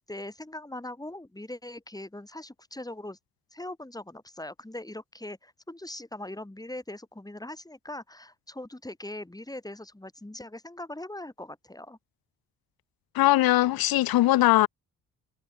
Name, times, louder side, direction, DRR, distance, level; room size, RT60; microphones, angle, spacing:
voice 1, 0.1-3.2 3.5-12.0, left 1 dB, 10° left, 4.5 m, -41 dB
voice 2, 13.1-14.7, left 16 dB, 65° left, 0.9 m, -20 dB
hypercardioid pair, 55°, 39 cm